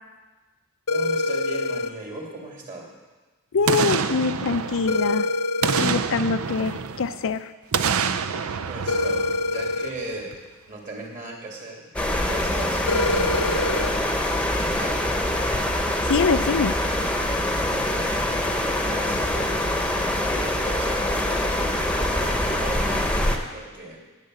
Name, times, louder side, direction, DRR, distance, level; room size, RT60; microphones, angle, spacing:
sound 1, 0.9-1.9 4.9-5.9 8.9-9.9 12.9-13.9, left 2 dB, 90° left, 1.1 m, -25 dB
voice 1, 0.9-3.0 8.7-10.3 10.7-15.1 17.7-24.1, right 2 dB, 35° right, -1 dB, 2.9 m, -38 dB
voice 2, 3.5-5.3 5.8-7.5 16.1-16.7, left 4 dB, 65° left, 11 dB, 0.5 m, -24 dB
Boom, 3.7-5.2 5.6-7.3 7.7-10.0 10.3-10.4, right 6 dB, 70° right, 0.6 m, -27 dB
sound 2, 11.9-23.4, left 1 dB, 5° left, 1.0 m, -24 dB
10.5 x 9.9 x 7.8 m, 1.2 s
head